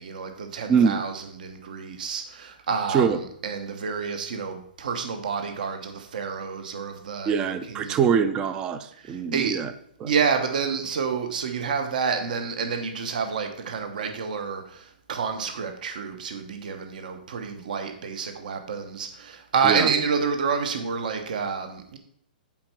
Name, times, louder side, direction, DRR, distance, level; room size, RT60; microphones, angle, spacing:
voice 1, 0.0-3.1 3.4-8.0 9.0-9.6 10.0-22.0, right 6 dB, 60° right, 6 dB, 1.0 m, -29 dB
voice 2, 0.7-1.0 2.9-3.2 7.3-9.7 10.0-10.1 19.6-19.9, right 7 dB, 15° right, 11 dB, 0.3 m, -23 dB
7.5 x 4.5 x 5.9 m, 0.67 s
hypercardioid pair, 165°, 5 cm